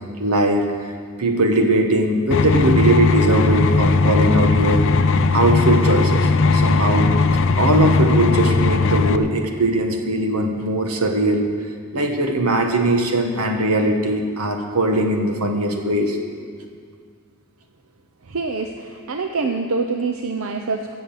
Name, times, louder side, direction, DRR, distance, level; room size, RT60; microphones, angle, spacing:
voice 1, 0.2-0.9 1.2-4.8 5.3-7.1 7.5-11.5 11.9-16.5, right 1 dB, 85° right, 4 dB, 1.5 m, -20 dB
sound 1, 2.3-9.2, left 3 dB, 60° left, 0.5 m, -17 dB
voice 2, 18.2-20.9, right 4 dB, 65° right, 4 dB, 0.7 m, -25 dB
15.5 x 7.2 x 7.4 m, 2.1 s
head